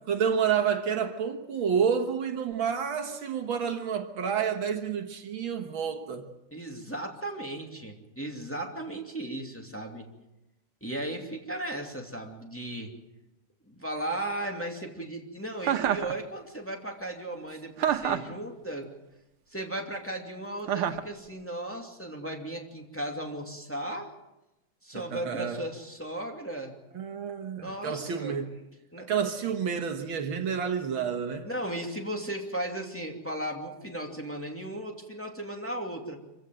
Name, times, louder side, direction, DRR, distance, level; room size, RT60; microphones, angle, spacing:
voice 1, 0.1-6.3 24.9-25.6 26.9-28.5 29.0-31.5, right 7 dB, 65° right, 2.1 m, -29 dB
voice 2, 6.5-10.1 10.8-12.9 13.7-18.9 19.5-24.1 24.8-26.7 27.6-28.4 28.9-29.1 31.4-36.2, right 1 dB, 5° left, 2.5 m, -36 dB
Chuckle chortle, 15.6-16.1 17.8-18.4 20.7-21.1, right 9 dB, 90° right, 2.0 m, -27 dB
25.5 x 16.5 x 7.7 m
omnidirectional pair, 2.4 m